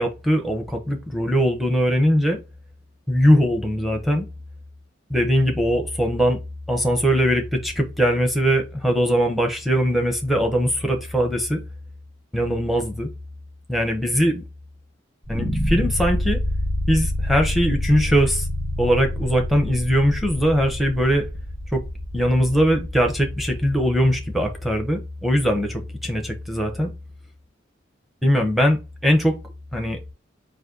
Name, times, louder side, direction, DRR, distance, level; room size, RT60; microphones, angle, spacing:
voice 1, 0.0-2.4 3.1-4.3 5.1-6.4 6.7-11.6 12.3-13.1 13.7-14.4 15.3-16.4 16.9-18.5 18.8-21.3 21.7-21.8 22.1-26.9 28.2-29.4 29.7-30.0, equal, ahead, 0.8 m, -21 dB
sound 1, 15.2-24.3, left 1 dB, 25° right, 1.8 m, -28 dB
4.1 x 2.7 x 3.8 m
head